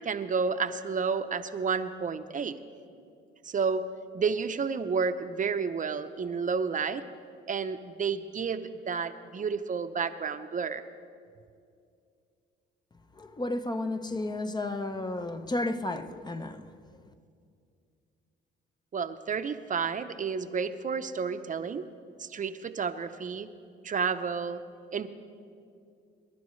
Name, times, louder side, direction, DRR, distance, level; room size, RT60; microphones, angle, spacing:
voice 1, 0.0-2.5 3.4-3.8 4.1-7.0 7.5-10.8 18.9-21.8 22.2-23.5 23.8-24.6 24.9-25.1, right 5 dB, 40° right, 0.7 m, -31 dB
voice 2, 13.1-16.8, left 2 dB, 20° left, 0.7 m, -33 dB
26.0 x 11.5 x 3.2 m
cardioid pair, 90°, 20 cm